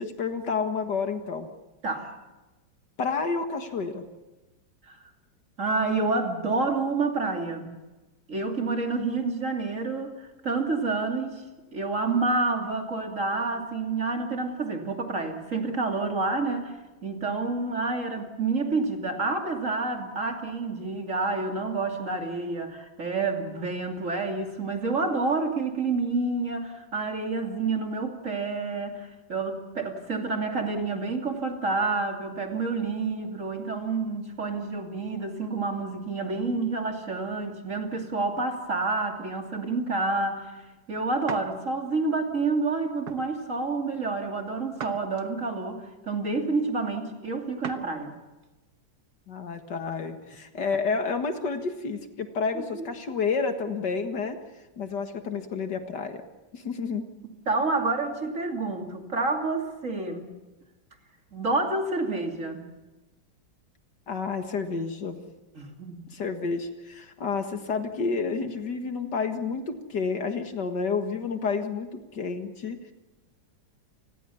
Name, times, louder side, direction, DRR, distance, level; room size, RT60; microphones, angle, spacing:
voice 1, 0.0-1.5 3.0-4.0 49.3-54.4 54.8-56.2 56.5-57.1 64.1-65.2 66.1-72.9, left 5 dB, 60° left, 7 dB, 2.3 m, -30 dB
voice 2, 5.6-7.7 8.3-11.4 11.7-16.7 17.0-40.6 40.9-48.1 52.5-52.8 57.5-60.3 61.3-62.7 65.5-66.0, right 3 dB, 40° right, 3 dB, 3.1 m, -28 dB
sound 1, 41.3-41.5 42.1-42.3 43.0-43.3 44.8-45.5 47.6-47.9 48.4-48.5 50.2-50.9, right 7 dB, 60° right, 1.6 m, -40 dB
29.0 x 21.0 x 7.1 m, 1.1 s
omnidirectional pair, 2.1 m